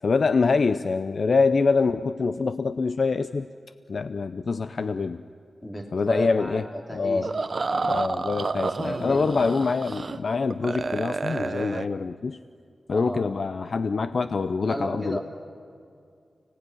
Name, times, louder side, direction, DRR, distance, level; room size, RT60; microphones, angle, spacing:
voice 1, 0.0-3.5 3.9-5.2 5.9-6.7 6.9-7.3 7.8-12.4 12.9-15.2, left 4 dB, 50° left, 12 dB, 0.5 m, -25 dB
voice 2, 5.6-7.5 8.6-9.5 12.9-13.3 14.6-15.2, equal, 15° left, 2 dB, 3.1 m, -34 dB
sound 1, 7.2-10.2 10.4-11.9, right 3 dB, 40° right, 0.8 m, -30 dB
30.0 x 18.5 x 9.7 m, 2.4 s
wide cardioid pair, 170°, 0 cm